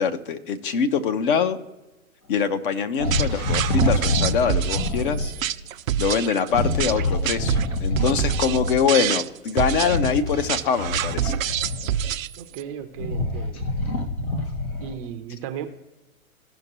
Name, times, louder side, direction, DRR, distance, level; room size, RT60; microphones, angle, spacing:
voice 1, 0.0-1.6 2.3-5.3 6.0-11.4, left 6 dB, 40° left, 10 dB, 0.7 m, -24 dB
sound 1, 3.0-5.3 6.5-8.8 9.8-12.1 12.7-15.0, left 1 dB, 80° left, 1.8 m, -26 dB
sound 2, 3.1-12.6, right 10 dB, 65° right, 0.6 m, -26 dB
voice 2, 12.4-13.7 14.8-15.7, right 9 dB, 25° right, 7 dB, 0.6 m, -35 dB
16.0 x 5.8 x 2.9 m, 1.1 s
hypercardioid pair, 120°, 43 cm